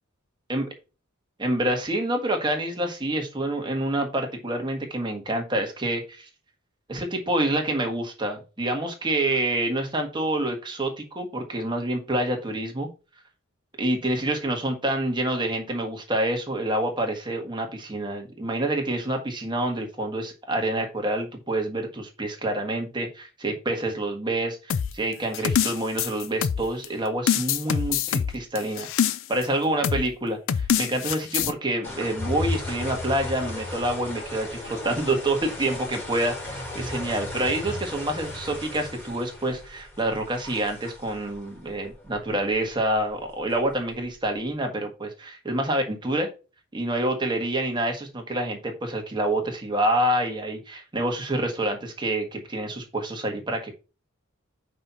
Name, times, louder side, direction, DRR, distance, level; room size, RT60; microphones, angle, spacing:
voice 1, 1.4-6.3 6.9-12.9 13.8-46.3 46.7-53.7, right 1 dB, 25° right, 3 dB, 1.5 m, -27 dB
sound 1, 24.7-26.9 27.3-29.4 29.8-30.1 30.5-31.5, left 8 dB, 70° left, 0.4 m, -25 dB
sound 2, 31.8-44.4, left 1 dB, 10° left, 2.1 m, -36 dB
5.4 x 4.2 x 5.7 m, 0.32 s
head